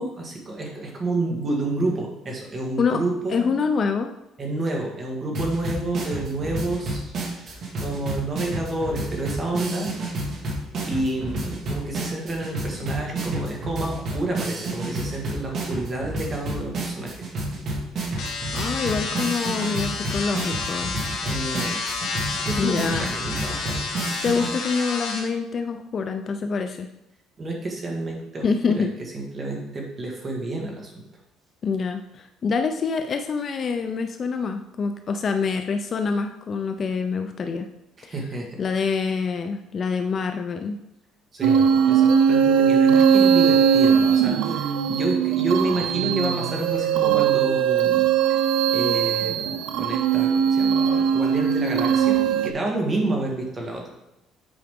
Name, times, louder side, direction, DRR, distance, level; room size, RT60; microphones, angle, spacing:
voice 1, 0.0-3.5 4.4-9.9 10.2-10.4 10.9-17.2 21.2-21.8 22.1-24.0 27.4-31.0 38.0-38.6 41.3-41.6 41.8-48.4 48.7-53.9, right 2 dB, 20° right, 0 dB, 1.5 m, -29 dB
voice 2, 3.3-4.1 18.5-20.9 22.6-23.1 24.2-26.9 28.4-28.9 31.6-37.7 38.0-38.1 38.6-40.8, left 5 dB, 30° left, 7 dB, 0.4 m, -26 dB
sound 1, 5.3-24.5, right 2 dB, 40° right, 1.6 m, -30 dB
sound 2, 18.2-25.2, left 4 dB, 65° left, 2.2 m, -30 dB
sound 3, 41.4-52.5, right 7 dB, 70° right, 0.4 m, -20 dB
8.6 x 4.8 x 3.6 m, 0.92 s
cardioid pair, 165°, 0 cm